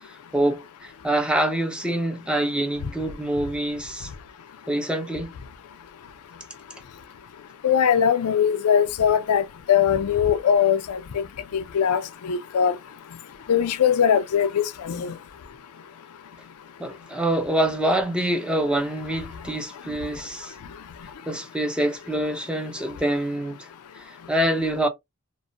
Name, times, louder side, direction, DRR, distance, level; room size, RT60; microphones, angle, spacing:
voice 1, 0.3-4.1 4.7-5.4 16.8-20.5 21.3-23.7 24.0-24.9, right 1 dB, 5° right, 0.3 m, -25 dB
voice 2, 7.6-11.2 11.5-12.7 13.5-15.2, left 8 dB, 80° left, 0.4 m, -21 dB
2.6 x 2.0 x 2.5 m
head